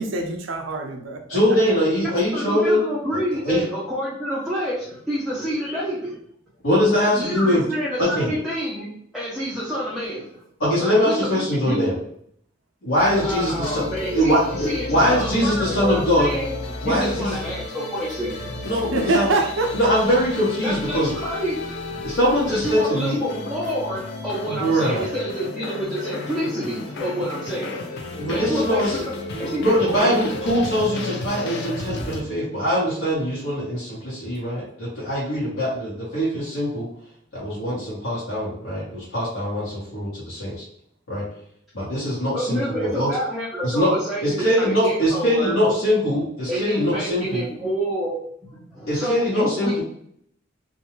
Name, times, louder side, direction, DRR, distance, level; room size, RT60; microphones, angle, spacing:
voice 1, 0.0-1.2 18.9-19.9, right 2 dB, 70° right, 4 dB, 0.5 m, -24 dB
voice 2, 1.3-2.9 3.4-3.6 6.6-7.6 8.0-8.3 10.6-11.9 12.8-13.8 14.1-16.3 16.8-17.3 18.6-19.3 19.7-21.1 22.0-23.2 24.5-25.0 28.2-29.0 29.3-36.9 37.3-40.6 41.1-41.2 41.7-43.1 43.6-43.9 44.2-47.5 48.9-49.8, equal, 90° left, -9 dB, 1.2 m, -22 dB
voice 3, 2.3-6.1 6.9-8.9 9.1-10.4 10.8-11.9 13.1-16.5 16.8-18.7 20.6-21.6 22.5-29.0 29.4-30.1 42.3-45.6 46.5-49.8, equal, ahead, -9 dB, 0.5 m, -28 dB
sound 1, 12.9-32.2, left 2 dB, 55° left, 0.5 m, -33 dB
2.5 x 2.3 x 3.0 m, 0.68 s
head